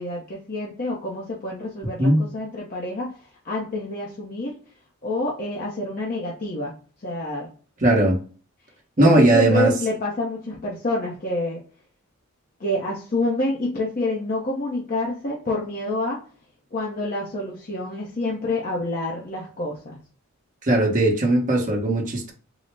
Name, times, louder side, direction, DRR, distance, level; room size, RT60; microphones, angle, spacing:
voice 1, 0.0-3.1 3.4-4.6 5.0-6.7 7.0-7.5 9.0-11.6 12.6-16.2 16.7-20.0, left 2 dB, 40° left, 0.7 m, -27 dB
voice 2, 7.8-8.2 9.0-9.7 20.6-22.3, right 1 dB, 35° right, 0.9 m, -18 dB
3.9 x 2.0 x 3.3 m
head